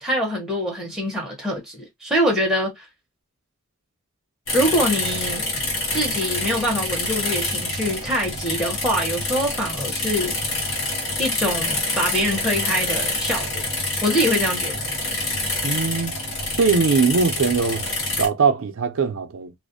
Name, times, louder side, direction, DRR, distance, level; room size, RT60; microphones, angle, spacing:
voice 1, 0.0-2.9 4.5-5.5 5.9-10.3 11.2-13.6 14.0-14.8, equal, ahead, 0.8 m, -24 dB
sound 1, 4.5-18.3, left 2 dB, 65° left, 1.1 m, -26 dB
voice 2, 15.6-16.1 16.6-17.8 18.2-19.5, right 5 dB, 70° right, 0.4 m, -20 dB
2.4 x 2.1 x 2.5 m
head